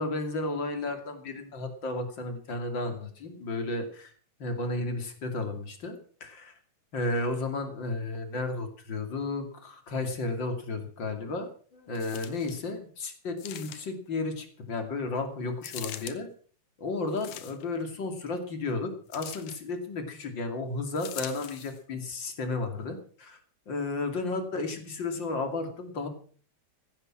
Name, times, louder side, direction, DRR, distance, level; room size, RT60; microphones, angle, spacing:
voice 1, 0.0-4.1 4.4-6.6 6.9-16.3 16.8-23.4 23.7-26.1, left 3 dB, 35° left, 6 dB, 2.9 m, -33 dB
sound 1, 12.0-12.6 13.4-14.1 15.6-16.2 17.1-17.8 19.1-19.6 21.0-21.8 22.5-22.6, left 12 dB, 65° left, 2.3 m, -42 dB
15.5 x 12.0 x 6.2 m, 0.43 s
omnidirectional pair, 4.3 m